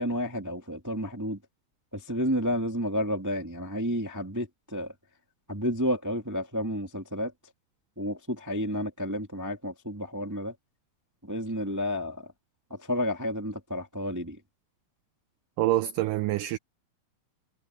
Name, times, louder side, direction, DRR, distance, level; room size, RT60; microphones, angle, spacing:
voice 1, 0.0-1.4 1.9-4.5 4.7-4.9 5.5-7.3 8.0-10.5 11.3-12.2 12.9-14.4, equal, 20° right, 0.4 m, -30 dB
voice 2, 15.6-16.6, right 16 dB, 90° right, 1.8 m, -26 dB
omnidirectional pair, 4.3 m